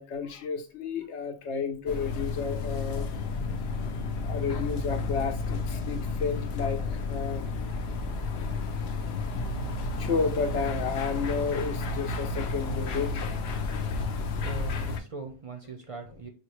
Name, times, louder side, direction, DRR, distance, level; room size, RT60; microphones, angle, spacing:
voice 1, 0.0-3.1 4.2-7.5 10.0-13.3, left 5 dB, 90° left, 1.1 m, -32 dB
sound 1, 1.9-15.0, left 3 dB, 70° left, 0.8 m, -32 dB
voice 2, 14.1-16.3, right 4 dB, 45° right, 0.4 m, -41 dB
5.0 x 2.4 x 3.0 m
omnidirectional pair, 1.1 m